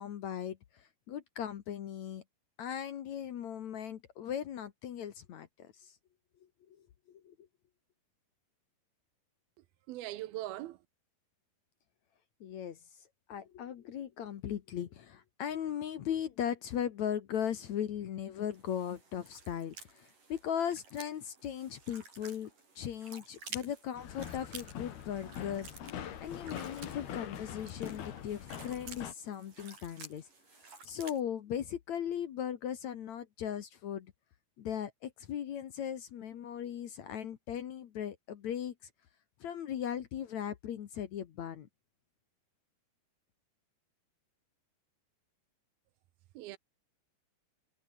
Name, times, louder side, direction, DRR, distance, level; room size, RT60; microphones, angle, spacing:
voice 1, 0.0-2.2 2.6-5.9 7.1-7.4 12.4-12.8 13.3-22.5 22.8-25.7 25.9-30.3 30.9-34.1 34.6-38.7 39.4-41.7, left 9 dB, 60° left, 2.2 m, -38 dB
voice 2, 9.9-10.8 46.4-46.6, right 15 dB, 80° right, 2.7 m, -40 dB
sound 1, 18.5-31.2, right 4 dB, 55° right, 9.5 m, -52 dB
sound 2, 24.0-29.1, left 9 dB, 80° left, 4.4 m, -43 dB
omnidirectional pair, 4.4 m